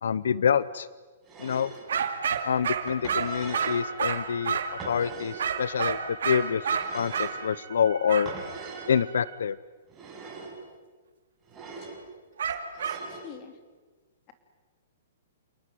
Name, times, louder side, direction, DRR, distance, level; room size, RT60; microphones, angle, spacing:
voice 1, 0.0-0.9 1.4-1.7 2.4-4.6 4.9-6.7 6.9-8.3 8.9-9.6, left 7 dB, 80° left, 18 dB, 0.8 m, -26 dB
sound 1, 1.2-1.9 2.9-3.8 4.8-5.5 6.7-7.4 8.3-9.0 9.9-10.6 11.4-12.0 12.7-13.3, right 4 dB, 15° right, 6.4 m, -42 dB
sound 2, 1.9-4.8 5.4-7.4 8.1-8.3 12.4-13.1, right 6 dB, 80° right, 2.8 m, -29 dB
sound 3, 3.5-9.4, right 9 dB, 65° right, 3.1 m, -45 dB
voice 2, 12.8-13.5, left 8 dB, 25° left, 8 dB, 2.9 m, -45 dB
29.0 x 19.0 x 9.4 m, 1.4 s
hypercardioid pair, 160°, 0 cm